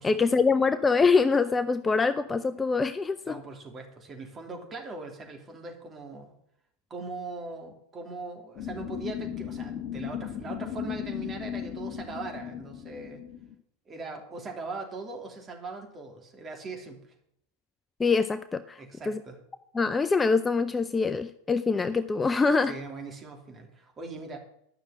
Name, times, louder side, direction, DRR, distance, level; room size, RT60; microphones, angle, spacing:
voice 1, 0.0-3.4 18.0-19.2 19.7-22.7, left 4 dB, 15° left, 12 dB, 0.5 m, -24 dB
voice 2, 3.3-6.3 6.9-13.2 13.9-17.1 18.8-19.4 22.6-24.4, right 3 dB, 25° right, 2 dB, 3.1 m, -40 dB
sound 1, 8.6-13.5, left 9 dB, 35° left, 1.7 m, -36 dB
10.5 x 6.5 x 8.8 m, 0.74 s
hypercardioid pair, 90°, 0 cm